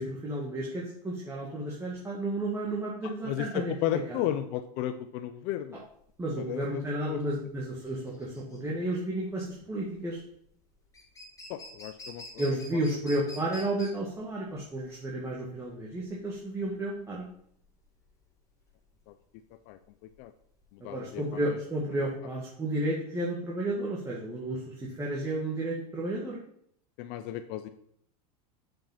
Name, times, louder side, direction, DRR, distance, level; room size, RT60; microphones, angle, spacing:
voice 1, 0.0-4.2 6.2-10.2 12.4-17.3 20.8-26.4, right 1 dB, 15° right, -4 dB, 1.7 m, -32 dB
voice 2, 3.0-5.9 6.4-6.8 7.1-7.2 11.5-12.4 19.1-19.2 19.7-19.8 20.2-20.3 20.7-21.2 27.0-27.7, left 12 dB, 50° left, 9 dB, 0.6 m, -34 dB
sound 1, 5.8-22.1, left 1 dB, 15° left, 2.2 m, -50 dB
7.2 x 5.2 x 5.7 m, 0.69 s
supercardioid pair, 125°, 21 cm